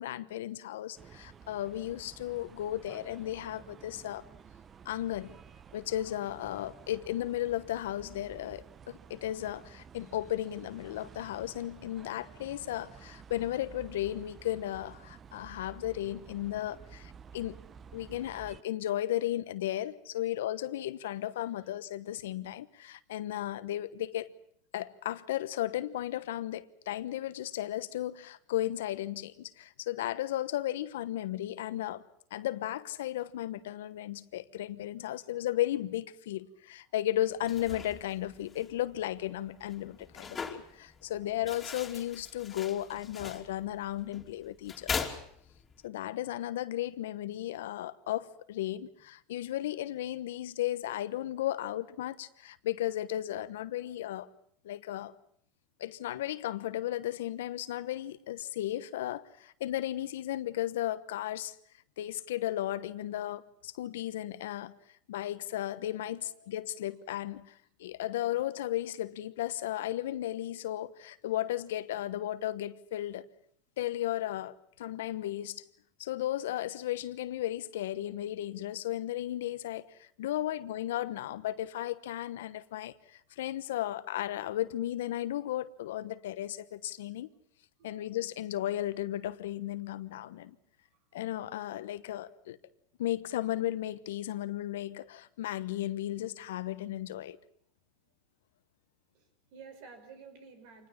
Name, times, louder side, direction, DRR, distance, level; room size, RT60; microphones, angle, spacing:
voice 1, 0.0-4.2 4.8-5.4 5.7-17.6 17.9-24.3 24.7-32.0 32.3-45.1 45.8-54.3 54.6-55.1 55.8-61.6 62.0-64.7 65.1-73.3 73.8-75.6 76.0-87.3 87.8-90.6 91.1-92.6 93.0-97.4, left 13 dB, 80° left, 1.1 m, -35 dB
sound 1, 0.9-18.6, right 7 dB, 30° right, 0.9 m, -52 dB
voice 2, 20.1-20.4 21.5-21.7 35.0-35.4 36.8-36.9 41.1-41.5 53.8-54.0 66.1-66.5 67.3-67.4 80.4-80.8 83.3-83.4 87.8-88.1 90.9-91.1 98.0-98.1 99.1-100.9, right 4 dB, 65° right, 5.8 m, -55 dB
sound 2, 37.3-45.9, left 5 dB, 20° left, 2.9 m, -42 dB
26.0 x 20.0 x 7.3 m
hypercardioid pair, 105°, 0 cm